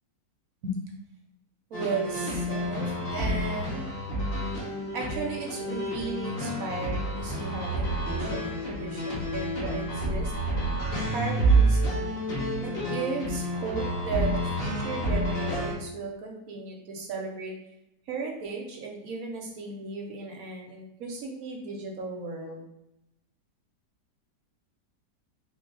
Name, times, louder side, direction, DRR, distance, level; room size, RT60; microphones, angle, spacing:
sound 1, 1.7-15.7, right 1 dB, 45° left, 0.9 m, -29 dB
voice 1, 1.7-3.9 4.3-4.4 4.9-10.3 11.1-12.2 12.5-17.5 18.1-22.6, right 3 dB, 65° right, 0 dB, 1.0 m, -35 dB
3.4 x 2.7 x 3.9 m, 0.87 s
omnidirectional pair, 1.8 m